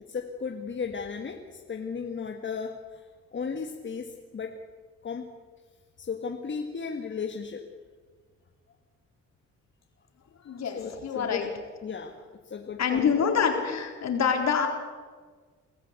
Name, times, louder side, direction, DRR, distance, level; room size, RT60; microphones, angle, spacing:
voice 1, 0.1-3.1 3.3-4.6 5.0-5.3 6.0-7.6 10.6-11.5 11.8-12.1 12.4-13.3, left 5 dB, 40° left, 3 dB, 1.8 m, -35 dB
voice 2, 10.4-11.5 12.8-14.7, left 6 dB, 60° left, 3 dB, 4.1 m, -26 dB
24.0 x 14.5 x 8.4 m, 1.5 s
cardioid pair, 90°, 30 cm